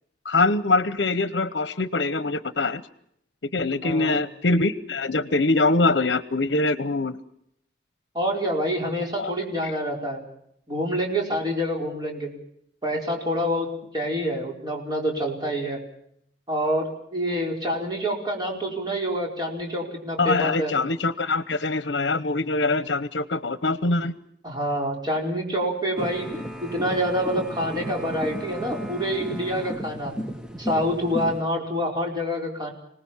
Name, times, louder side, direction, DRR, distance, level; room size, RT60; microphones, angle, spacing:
voice 1, 0.2-2.8 3.5-7.2 9.2-9.3 9.6-9.7 20.2-24.1, left 3 dB, 70° left, 14 dB, 0.9 m, -23 dB
voice 2, 3.8-4.2 8.1-10.2 10.7-12.3 12.8-15.8 16.5-20.7 24.4-26.3 26.6-30.1 30.6-32.7, equal, 25° right, 0 dB, 4.9 m, -27 dB
sound 1, 26.0-31.4, equal, 5° right, 1.0 m, -34 dB
26.0 x 19.0 x 7.2 m, 0.72 s
head